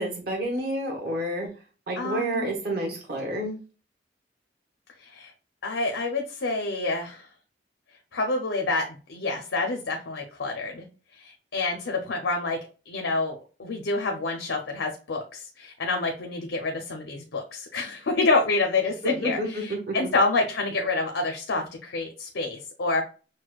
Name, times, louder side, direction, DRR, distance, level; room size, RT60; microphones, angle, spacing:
voice 1, 0.0-1.5 1.9-3.6 19.0-19.5 19.9-20.0, right 1 dB, 60° right, 0 dB, 1.1 m, -29 dB
voice 2, 2.0-2.5 5.0-5.3 5.6-7.3 8.1-10.8 11.1-12.6 12.9-23.0, left 3 dB, 85° left, 2 dB, 0.6 m, -28 dB
6.2 x 2.2 x 2.3 m, 0.35 s
head